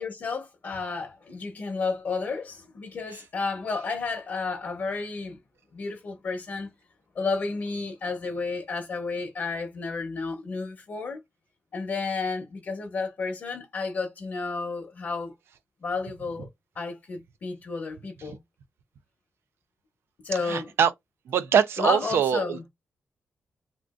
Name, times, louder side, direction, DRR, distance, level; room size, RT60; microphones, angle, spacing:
voice 1, 0.0-5.4 5.7-6.7 7.2-11.2 11.7-15.3 15.8-16.5 16.7-18.4 20.2-20.7 21.8-22.6, left 4 dB, 60° left, 0.8 m, -31 dB
voice 2, 20.4-20.9 21.3-22.7, right 8 dB, 90° right, 0.4 m, -24 dB
3.7 x 2.4 x 2.4 m
wide cardioid pair, 130°, 4 cm